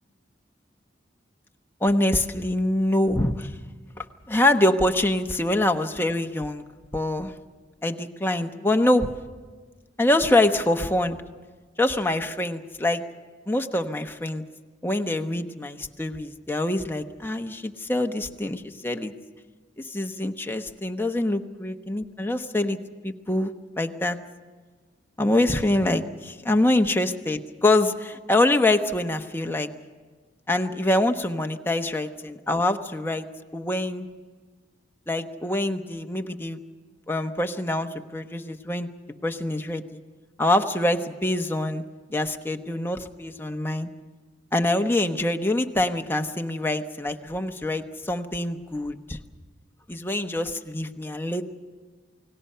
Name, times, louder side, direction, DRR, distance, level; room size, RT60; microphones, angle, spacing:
voice 1, 1.8-3.5 4.0-6.6 6.9-7.3 7.8-9.1 10.0-11.2 11.8-13.0 13.5-14.4 14.8-19.1 19.9-22.8 23.0-23.5 23.8-24.2 25.2-29.7 30.5-33.3 33.5-34.1 35.1-36.6 37.1-38.9 39.2-40.0 40.4-41.8 42.1-43.9 44.5-49.2 49.9-51.5, left 1 dB, 10° left, 5 dB, 1.0 m, -25 dB
29.0 x 19.0 x 5.7 m, 1.4 s
head